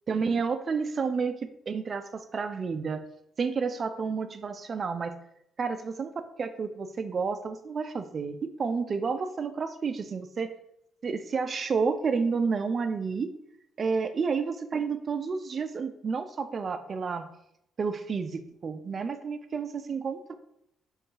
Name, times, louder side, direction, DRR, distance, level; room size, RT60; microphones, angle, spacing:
voice 1, 0.1-3.0 3.4-5.1 5.6-6.1 6.4-10.5 11.0-13.3 13.8-17.3 17.8-20.3, right 5 dB, 45° right, 10 dB, 0.4 m, -30 dB
3.5 x 3.1 x 4.7 m, 0.78 s
cardioid pair, 90°, 0 cm